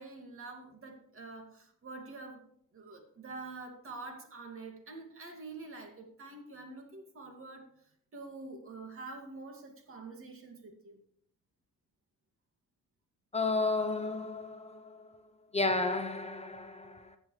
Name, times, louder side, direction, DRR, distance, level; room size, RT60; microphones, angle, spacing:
voice 1, 0.0-2.4 2.7-7.7 8.1-11.0, right 3 dB, 45° right, 2.3 m, -46 dB
voice 2, 13.3-15.0 15.5-17.2, left 3 dB, 20° left, 0.8 m, -32 dB
15.0 x 7.8 x 3.3 m
cardioid pair, 90°, 30 cm